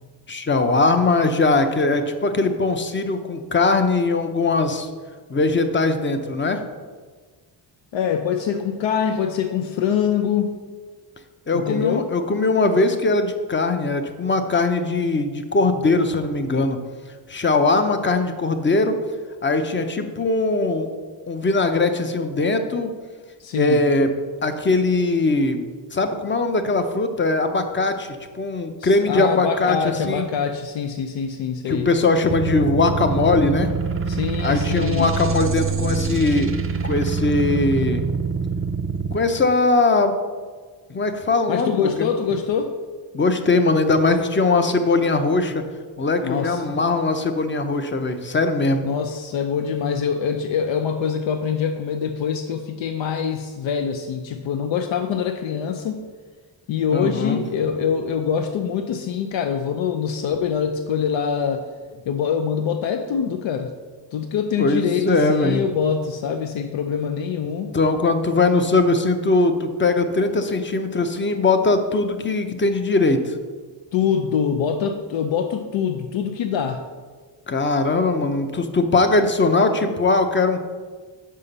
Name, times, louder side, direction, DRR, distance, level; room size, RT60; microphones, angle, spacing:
voice 1, 0.3-4.9 5.3-6.6 11.5-16.8 17.3-19.0 19.4-20.9 21.3-22.9 23.6-24.1 24.4-25.6 25.9-30.3 31.7-33.7 34.4-36.5 36.8-38.1 39.1-40.2 40.9-42.1 43.1-45.6 46.0-48.9 56.9-57.4 64.6-65.6 67.7-73.3 77.5-80.6, left 3 dB, 25° left, 8 dB, 0.6 m, -20 dB
voice 2, 7.9-10.6 11.5-12.1 23.4-23.8 28.8-31.9 34.1-35.1 41.5-42.7 46.2-46.7 48.9-56.0 56.7-61.6 62.1-63.7 64.1-67.7 73.9-76.9, left 7 dB, 85° left, 6 dB, 0.6 m, -24 dB
sound 1, 32.3-39.1, right 5 dB, 30° right, 0.5 m, -25 dB
5.6 x 5.0 x 6.6 m, 1.5 s
wide cardioid pair, 130°, 44 cm